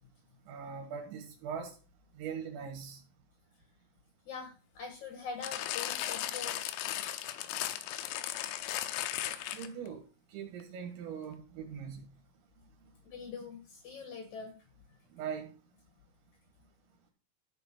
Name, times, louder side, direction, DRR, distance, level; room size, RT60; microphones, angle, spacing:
voice 1, 0.5-1.8 2.2-3.0 9.5-10.0 10.3-12.1 15.1-15.5, right 7 dB, 70° right, 3 dB, 3.8 m, -41 dB
voice 2, 4.3-6.6 13.1-14.5, left 5 dB, 65° left, 4 dB, 1.9 m, -43 dB
sound 1, 5.4-9.9 10.6-10.7, left 13 dB, 90° left, 3.6 m, -36 dB
13.0 x 5.0 x 6.0 m, 0.36 s
omnidirectional pair, 5.8 m